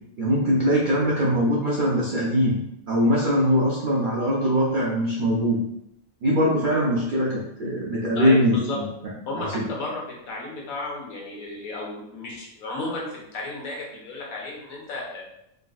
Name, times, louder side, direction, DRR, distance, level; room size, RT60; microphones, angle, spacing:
voice 1, 0.2-2.6 2.9-5.6 6.2-8.9 9.3-9.6, equal, 70° right, -5 dB, 0.4 m, -22 dB
voice 2, 8.1-8.8 9.3-15.2, left 2 dB, 80° left, -2 dB, 1.2 m, -33 dB
3.6 x 2.3 x 2.4 m, 0.80 s
omnidirectional pair, 1.5 m